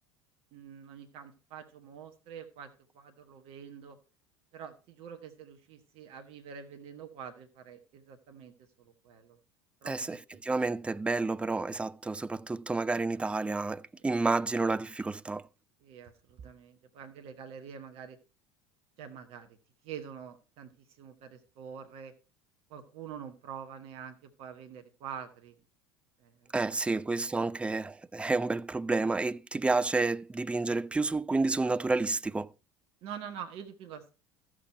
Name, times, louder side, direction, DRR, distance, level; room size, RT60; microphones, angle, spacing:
voice 1, 0.5-2.7 2.9-4.0 4.5-9.4 9.8-10.2 15.8-18.2 19.0-19.6 19.8-20.7 21.0-22.1 22.7-25.5 26.2-26.5 27.5-27.7 33.0-34.1, right 7 dB, 50° right, 1.2 m, -46 dB
voice 2, 9.8-15.5 26.5-32.5, right 3 dB, 10° right, 0.4 m, -30 dB
14.0 x 6.2 x 4.3 m
figure-of-eight pair, 70°, 13 cm